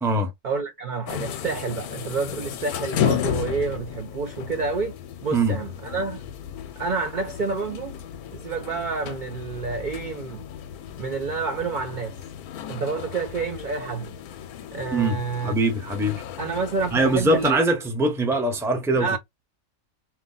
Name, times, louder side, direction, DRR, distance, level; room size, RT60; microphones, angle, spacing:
voice 1, 0.4-4.9 5.2-6.2 6.8-8.0 8.3-10.4 11.0-12.2 12.7-14.1 14.7-15.6 16.4-17.6 19.0-19.2, right 4 dB, 55° right, 0.5 m, -29 dB
sound 1, 1.1-17.5, left 9 dB, 85° left, 1.1 m, -34 dB
voice 2, 14.9-16.2 16.9-19.1, right 2 dB, 5° right, 0.6 m, -22 dB
4.4 x 2.2 x 3.8 m
omnidirectional pair, 1.5 m